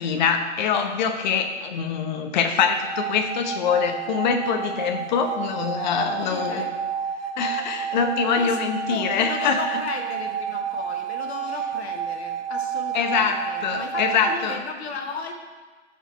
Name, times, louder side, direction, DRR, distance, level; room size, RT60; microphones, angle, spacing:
voice 1, 0.0-6.6 7.4-9.8 12.9-14.6, left 6 dB, 40° left, 5 dB, 0.9 m, -24 dB
sound 1, 2.8-14.5, right 8 dB, 40° right, 0.8 m, -30 dB
voice 2, 5.8-7.1 8.4-8.6 8.9-15.3, left 4 dB, 60° left, 3 dB, 1.5 m, -35 dB
13.0 x 5.1 x 3.4 m, 1.4 s
hypercardioid pair, 135°, 37 cm